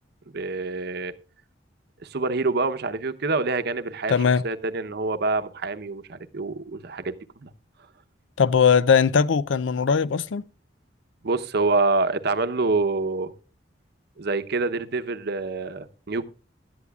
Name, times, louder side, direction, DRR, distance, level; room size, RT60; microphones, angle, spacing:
voice 1, 0.3-1.1 2.1-4.1 4.4-7.1 7.4-7.5 11.2-13.3 14.2-16.2, right 3 dB, 60° right, 0.8 m, -26 dB
voice 2, 4.1-4.4 8.4-10.4, left 6 dB, 85° left, 0.5 m, -20 dB
16.5 x 11.0 x 2.3 m
head